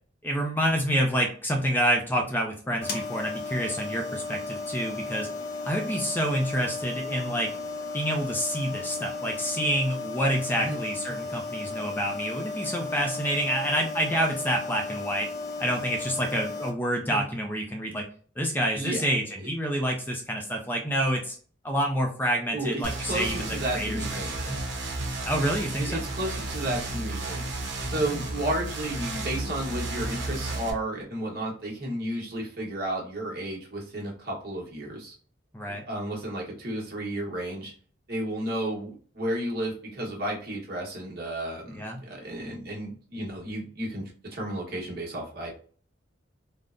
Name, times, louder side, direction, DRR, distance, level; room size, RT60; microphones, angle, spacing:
voice 1, 0.2-5.3 5.6-7.5 7.9-15.3 15.6-18.1 18.4-21.4 21.6-24.0 24.3-24.6 25.2-26.0 35.5-35.8 41.7-42.0, equal, 10° left, 2 dB, 0.4 m, -28 dB
sound 1, 2.8-16.7, left 3 dB, 55° left, 0.6 m, -35 dB
voice 2, 18.7-19.1 19.4-19.5 22.5-24.4 25.8-27.5 27.9-35.1 35.9-37.7 38.1-45.5, right 1 dB, 55° right, -2 dB, 1.0 m, -32 dB
sound 2, 22.8-30.7, right 2 dB, 75° right, 0.8 m, -33 dB
3.5 x 2.0 x 2.4 m, 0.42 s
head